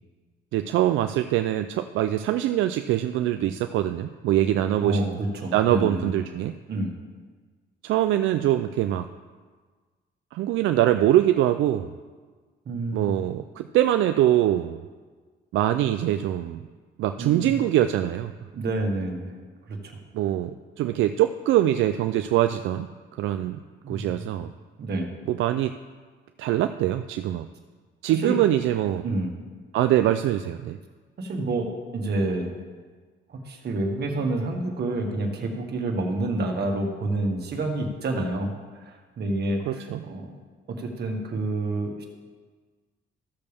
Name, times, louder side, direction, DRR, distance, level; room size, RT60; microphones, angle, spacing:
voice 1, 0.5-5.2 5.5-6.5 7.8-9.1 10.3-11.9 12.9-14.8 15.5-16.6 17.0-18.3 20.1-22.9 23.2-23.6 23.9-24.5 25.3-25.7 26.4-27.5 28.0-29.0 29.7-30.8 39.7-40.0, right 12 dB, 80° right, 8 dB, 0.4 m, -23 dB
voice 2, 4.8-6.1 6.7-6.9 12.6-13.1 17.2-17.5 18.5-19.3 19.7-20.0 23.8-24.1 24.8-25.1 28.2-28.4 29.0-29.3 31.2-31.7 31.9-32.5 33.3-38.5 38.8-40.4 40.7-42.1, right 2 dB, 55° right, 2 dB, 1.7 m, -28 dB
14.5 x 6.8 x 3.5 m, 1.5 s
cardioid pair, 90°, 20 cm